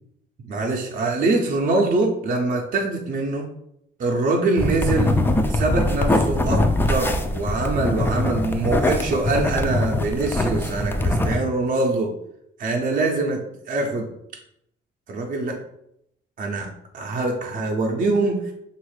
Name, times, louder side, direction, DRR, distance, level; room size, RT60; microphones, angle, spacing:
voice 1, 0.5-3.5 4.0-5.1 5.5-6.6 6.9-12.1 12.6-13.4 13.7-14.1 15.1-15.6 16.4-16.7 16.9-18.5, right 2 dB, 45° right, 0 dB, 0.5 m, -23 dB
sound 1, 4.6-11.4, left 1 dB, 10° left, 0.3 m, -22 dB
3.1 x 2.4 x 3.2 m, 0.77 s
cardioid pair, 90°, 20 cm